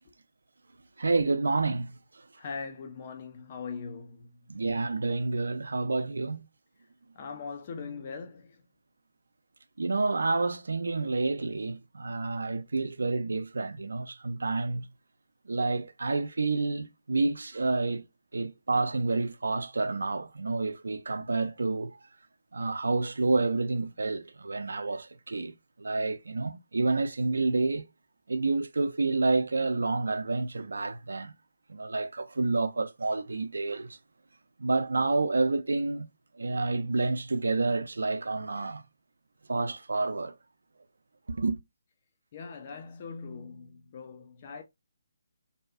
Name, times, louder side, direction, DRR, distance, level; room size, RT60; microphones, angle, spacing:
voice 1, 1.0-1.9 4.5-6.4 9.8-14.9 15.5-18.0 18.3-22.0 22.5-25.5 25.8-27.9 28.3-31.3 31.7-34.0 34.6-36.1 36.4-38.8 39.5-40.3 41.3-41.6, right 3 dB, 65° right, 0.3 m, -29 dB
voice 2, 2.4-4.3 7.2-8.6 42.3-44.6, left 5 dB, 35° left, 0.4 m, -41 dB
2.7 x 2.2 x 2.4 m
figure-of-eight pair, 145°, 0 cm